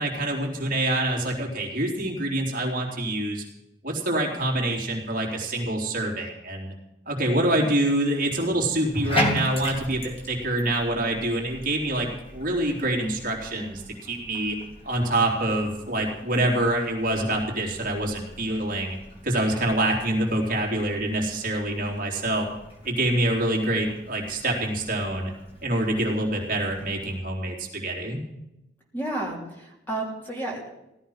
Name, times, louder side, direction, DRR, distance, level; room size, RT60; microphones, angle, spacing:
voice 1, 0.0-3.4 3.8-6.7 7.0-14.6 14.8-19.0 19.2-22.5 22.8-25.3 25.6-28.2, right 1 dB, 45° right, 0 dB, 3.5 m, -26 dB
Bathtub (filling or washing), 8.8-27.2, equal, 30° left, 3.2 m, -37 dB
voice 2, 28.9-30.7, right 1 dB, 10° left, -2 dB, 3.5 m, -31 dB
17.0 x 13.0 x 5.7 m, 0.90 s
head